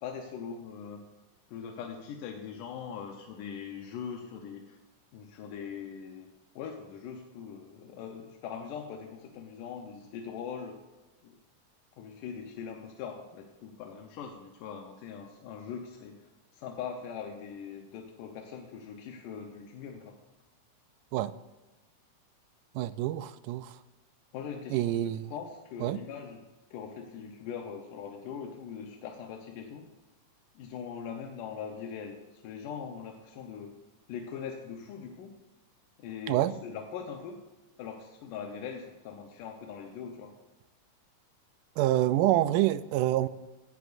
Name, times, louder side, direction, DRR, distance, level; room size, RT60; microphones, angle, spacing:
voice 1, 0.0-1.1 1.5-4.8 5.1-10.8 11.2-11.4 12.0-20.1 24.3-25.0 25.3-29.9 30.6-33.8 34.1-35.4 36.0-37.4 37.8-40.3, left 7 dB, 85° left, 2 dB, 2.5 m, -41 dB
voice 2, 22.8-23.8 24.7-25.3 25.8-26.0 36.3-36.5 41.8-43.3, right 14 dB, 90° right, 15 dB, 2.1 m, -27 dB
17.0 x 12.5 x 2.6 m, 1.1 s
omnidirectional pair, 3.6 m